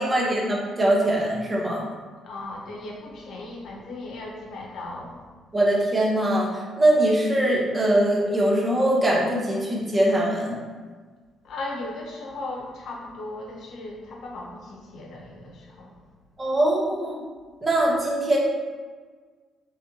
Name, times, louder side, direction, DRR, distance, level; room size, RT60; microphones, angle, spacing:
voice 1, 0.0-1.9 5.5-10.5 16.4-17.1 17.6-18.4, right 1 dB, 25° right, -3 dB, 1.0 m, -22 dB
voice 2, 2.2-5.2 11.4-15.9, left 2 dB, 70° left, -1 dB, 0.8 m, -37 dB
4.1 x 3.3 x 2.8 m, 1.5 s
cardioid pair, 90°, 0 cm